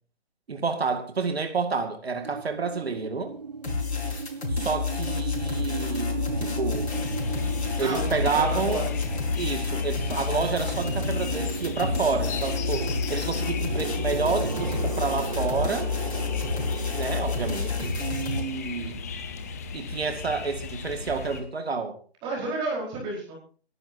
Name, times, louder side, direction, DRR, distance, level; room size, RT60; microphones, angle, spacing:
voice 1, 0.5-3.3 4.5-6.9 7.8-8.8 9.4-15.9 17.0-19.0 19.7-22.0, right 4 dB, 65° right, 2.2 m, -29 dB
sound 1, 2.2-19.1, right 5 dB, 40° right, 0.6 m, -36 dB
sound 2, 3.6-18.4, left 5 dB, 75° left, 5.5 m, -30 dB
sound 3, 6.9-21.4, left 4 dB, 15° left, 0.7 m, -36 dB
voice 2, 7.8-9.1 22.2-23.4, right 2 dB, 15° right, 4.7 m, -32 dB
27.0 x 11.0 x 2.8 m
figure-of-eight pair, 155°, 33 cm